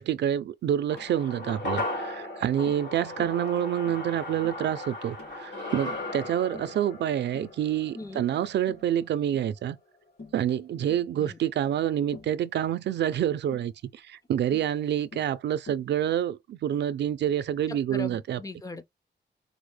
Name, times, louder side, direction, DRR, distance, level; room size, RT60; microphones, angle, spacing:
voice 1, 0.0-9.8 10.3-18.4, right 10 dB, 70° right, 0.4 m, -27 dB
sound 1, 0.9-9.4 9.7-9.8, left 2 dB, 80° left, 2.3 m, -37 dB
Tap, 1.0-1.2 1.8-2.0 2.7-2.9 3.2-3.4 3.9-4.1 4.4-4.7 5.2-5.4 5.9-6.1 6.5-6.8 7.3-7.6 8.0-8.3 8.7-8.9 9.3-9.5 10.2-10.4 10.9-11.1 12.1-12.4 13.5-13.7 14.5-14.8 15.1-15.4 15.7-15.9, left 3 dB, 60° left, 2.2 m, -47 dB
voice 2, 8.0-8.3 11.2-11.4 17.7-18.8, left 2 dB, 20° left, 0.4 m, -39 dB
4.2 x 2.1 x 3.2 m
wide cardioid pair, 175°, 19 cm